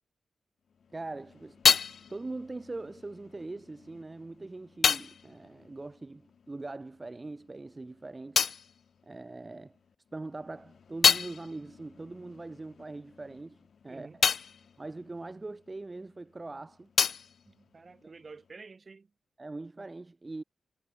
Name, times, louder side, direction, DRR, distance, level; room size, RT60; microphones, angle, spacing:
sound 1, 0.8-6.8 7.1-9.8 10.2-16.2 16.5-18.5, left 6 dB, 65° left, 0.7 m, -31 dB
voice 1, 0.9-1.6 2.1-8.4 9.0-9.8 10.1-14.2 14.8-16.9 18.0-18.1 19.4-20.4, right 2 dB, 30° right, 1.7 m, -42 dB
voice 2, 13.9-14.2 17.4-19.1, right 4 dB, 45° right, 4.4 m, -50 dB
supercardioid pair, 50°, 0 cm